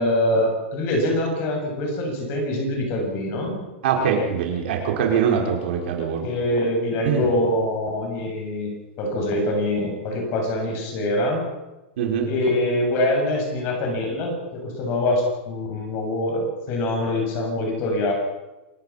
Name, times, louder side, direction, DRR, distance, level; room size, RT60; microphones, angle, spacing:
voice 1, 0.0-3.6 6.2-8.7 9.0-11.4 12.2-18.1, left 1 dB, 35° left, 2 dB, 7.3 m, -24 dB
voice 2, 3.8-6.3 7.0-7.3 12.0-12.3, right 7 dB, 60° right, 1 dB, 5.0 m, -23 dB
27.5 x 17.5 x 5.9 m, 1.0 s
supercardioid pair, 160°, 6 cm